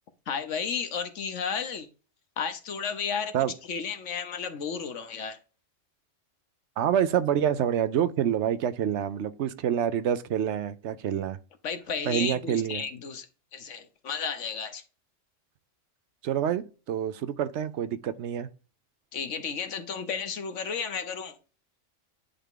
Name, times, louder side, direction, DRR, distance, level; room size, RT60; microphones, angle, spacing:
voice 1, 0.3-1.9 2.4-3.3 3.7-5.4 11.6-13.3 13.5-14.8 19.1-21.3, left 6 dB, 75° left, 1.3 m, -33 dB
voice 2, 6.8-11.4 12.0-12.8 16.2-18.5, right 9 dB, 70° right, 0.9 m, -27 dB
10.0 x 3.5 x 3.8 m
omnidirectional pair, 1.3 m